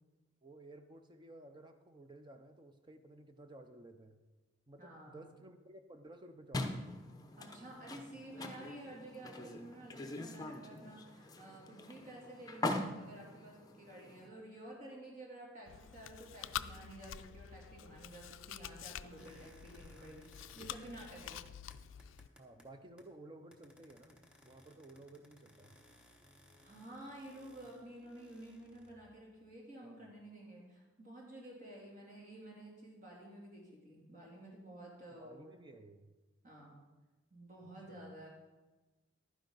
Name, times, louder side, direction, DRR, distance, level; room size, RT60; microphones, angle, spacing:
voice 1, 0.4-4.2 4.7-7.1 21.3-21.5 22.4-25.8 29.8-30.0 35.2-36.1 37.6-38.1, right 1 dB, 25° right, 7 dB, 0.6 m, -55 dB
voice 2, 4.8-5.3 7.4-21.4 26.6-35.6 36.4-36.8 37.3-38.3, right 1 dB, 40° right, -3 dB, 3.0 m, -52 dB
sound 1, 6.5-14.3, left 2 dB, 20° left, 0.8 m, -43 dB
Chewing mastication, 15.7-22.3, left 10 dB, 65° left, 0.3 m, -47 dB
sound 2, 19.2-23.2 23.5-29.1, left 1 dB, 5° right, 1.0 m, -63 dB
11.5 x 9.8 x 4.0 m, 1.2 s
head